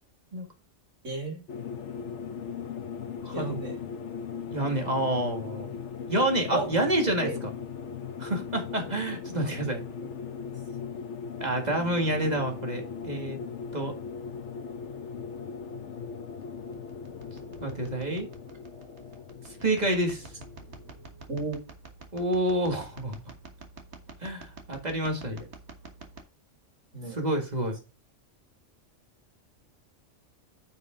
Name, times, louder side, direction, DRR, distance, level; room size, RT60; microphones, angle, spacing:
voice 1, 1.0-1.4 3.3-3.8 6.5-6.8 7.2-7.4 19.5-19.7 21.3-21.6 25.3-25.5 26.9-27.2, right 3 dB, 85° right, 2 dB, 3.2 m, -34 dB
sound 1, 1.5-21.0, left 6 dB, 70° left, 1.2 m, -39 dB
voice 2, 3.2-3.6 4.5-5.7 6.1-7.3 8.2-9.8 11.4-13.4 13.7-13.9 17.6-18.3 19.6-20.3 22.1-23.2 24.2-25.4 27.2-27.8, right 1 dB, 35° right, 3 dB, 2.1 m, -28 dB
sound 2, 16.4-26.2, right 3 dB, 65° right, 1.7 m, -49 dB
9.6 x 5.5 x 3.8 m, 0.30 s
omnidirectional pair, 1.3 m